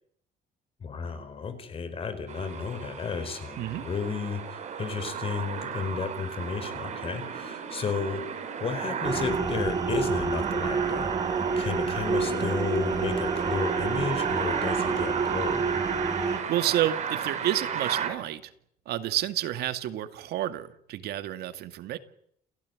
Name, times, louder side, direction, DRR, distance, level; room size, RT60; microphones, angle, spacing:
voice 1, 0.8-11.2 11.6-15.7, left 5 dB, 35° left, 11 dB, 4.7 m, -33 dB
sound 1, 2.3-18.1, right 7 dB, 45° right, 6.4 m, -33 dB
voice 2, 3.6-3.9 16.2-18.5 18.9-22.0, right 12 dB, 85° right, 10 dB, 2.2 m, -30 dB
sound 2, 9.0-16.4, right 4 dB, 25° right, 2.0 m, -29 dB
30.0 x 17.0 x 9.6 m, 0.70 s
cardioid pair, 155°, 16 cm